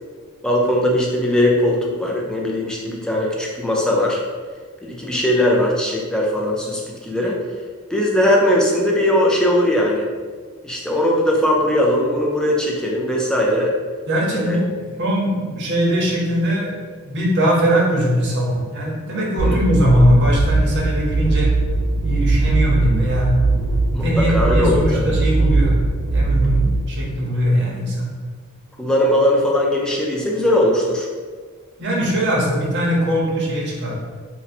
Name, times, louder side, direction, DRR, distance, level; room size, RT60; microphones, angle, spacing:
voice 1, 0.4-4.2 4.8-7.4 7.9-10.1 10.6-13.7 14.3-14.6 19.4-19.6 23.9-25.2 28.8-31.1, left 1 dB, 5° left, -2 dB, 0.4 m, -19 dB
voice 2, 14.1-14.7 15.0-16.8 17.0-21.5 22.0-23.3 23.9-25.8 26.1-28.1 31.8-33.9, equal, 55° right, -3 dB, 0.8 m, -20 dB
sound 1, 19.4-26.8, right 3 dB, 80° right, 0.4 m, -19 dB
2.7 x 2.1 x 4.1 m, 1.6 s
head